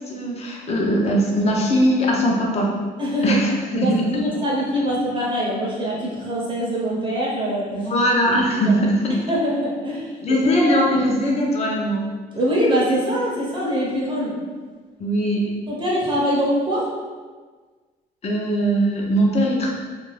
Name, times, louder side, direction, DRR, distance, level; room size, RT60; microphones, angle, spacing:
voice 1, 0.0-2.7 3.2-4.2 7.7-9.2 10.2-12.0 15.0-15.5 18.2-19.7, equal, 40° left, -1 dB, 0.6 m, -20 dB
voice 2, 3.0-3.4 3.7-7.9 8.6-8.8 9.3-10.8 12.3-14.4 15.7-16.9, equal, 30° right, -5 dB, 0.7 m, -23 dB
2.4 x 2.3 x 3.2 m, 1.4 s
cardioid pair, 110°, 17 cm